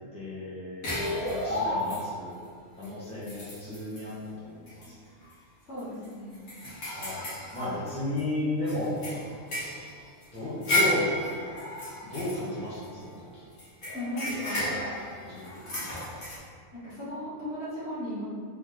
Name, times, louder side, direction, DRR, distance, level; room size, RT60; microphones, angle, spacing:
voice 1, 0.1-2.4 2.8-5.1 6.9-7.3 7.5-9.2 10.3-11.1 12.0-13.4 15.1-16.0, left 1 dB, 5° left, -11 dB, 1.2 m, -34 dB
sound 1, 0.8-2.3 2.8-2.9 3.2-4.1 4.7-4.9 5.2-5.3 5.8-8.2 8.7-13.1 13.6-16.4, left 1 dB, 80° left, 1.8 m, -32 dB
voice 2, 5.6-6.4 13.9-14.8 16.8-18.3, left 1 dB, 50° left, -10 dB, 1.7 m, -36 dB
4.1 x 3.8 x 3.3 m, 2.1 s
omnidirectional pair, 1.4 m